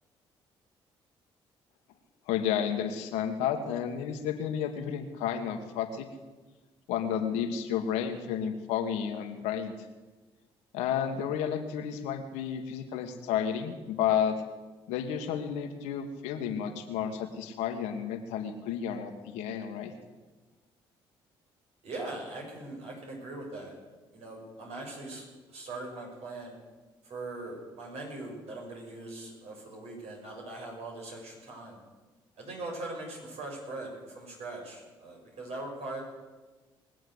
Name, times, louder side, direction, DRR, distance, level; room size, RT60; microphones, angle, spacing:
voice 1, 2.3-6.1 6.9-9.7 10.7-14.4 14.9-19.9, left 8 dB, 90° left, 6 dB, 1.6 m, -31 dB
voice 2, 21.8-23.8 24.1-26.6 27.0-31.8 32.4-36.0, right 2 dB, 70° right, -1 dB, 6.3 m, -41 dB
21.0 x 7.9 x 8.0 m, 1.3 s
supercardioid pair, 60°, 11 cm